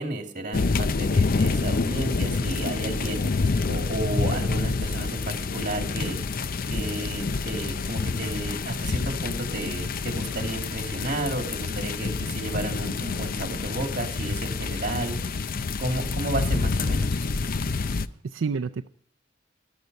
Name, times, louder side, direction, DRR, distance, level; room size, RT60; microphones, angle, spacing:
voice 1, 0.0-3.2 3.7-6.2 6.7-15.2 15.8-17.2, right 2 dB, 40° right, 5 dB, 2.4 m, -32 dB
sound 1, 0.5-18.1, left 4 dB, 45° left, 0.5 m, -27 dB
voice 2, 17.8-18.9, right 5 dB, 80° right, 7 dB, 0.5 m, -31 dB
13.5 x 12.0 x 5.3 m, 0.64 s
head